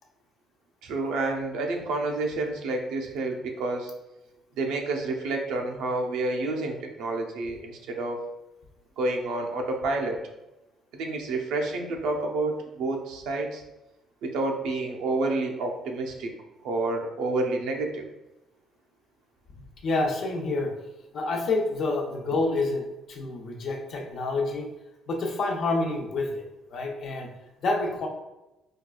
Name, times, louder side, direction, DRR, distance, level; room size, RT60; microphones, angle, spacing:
voice 1, 0.8-3.9 4.6-8.2 9.0-10.2 10.9-13.6 14.2-16.3 16.6-18.1, right 2 dB, 85° right, 1 dB, 0.5 m, -29 dB
voice 2, 19.8-20.7 21.1-24.7 25.1-26.4 26.7-27.3 27.6-28.1, left 2 dB, 55° left, 1 dB, 0.6 m, -28 dB
4.4 x 2.3 x 2.2 m, 0.96 s
cardioid pair, 120°, 0 cm